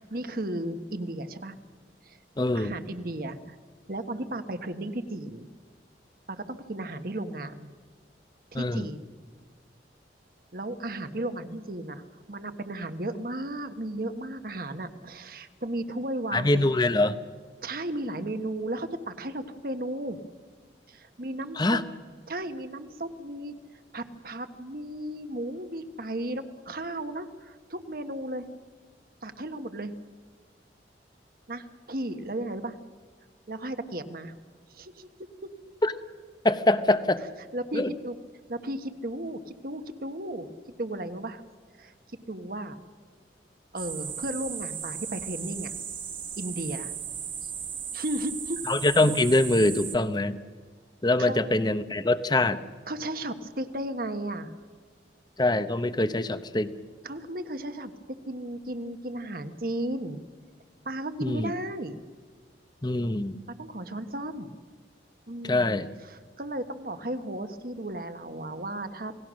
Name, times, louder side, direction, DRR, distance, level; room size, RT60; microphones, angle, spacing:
voice 1, 0.1-1.6 2.0-2.2 2.5-3.6 3.9-5.5 6.3-7.7 8.5-9.0 10.5-16.7 17.6-20.2 20.9-21.8 22.3-23.5 23.9-28.4 29.2-29.9 31.5-32.8 33.5-34.3 34.7-35.1 35.4-35.5 37.5-38.1 38.5-40.5 40.8-41.4 41.8-41.9 42.3-42.8 43.7-45.7 46.4-46.9 47.4-47.5 47.9-48.6 51.2-51.4 52.9-54.5 57.0-57.9 58.2-60.2 60.8-62.0 63.6-64.5 65.3-65.7 66.1-69.2, right 1 dB, 55° right, 9 dB, 1.4 m, -34 dB
voice 2, 2.4-2.7 8.5-8.9 16.3-17.2 21.6-21.8 35.8-35.9 36.4-37.2 37.7-37.9 48.7-50.4 51.0-52.6 55.4-56.7 61.2-61.5 62.8-63.4 65.4-65.9, left 2 dB, 25° left, 12 dB, 0.8 m, -24 dB
sound 1, 43.8-50.0, right 7 dB, 30° right, 1.5 m, -36 dB
28.5 x 18.5 x 6.4 m, 1.5 s
head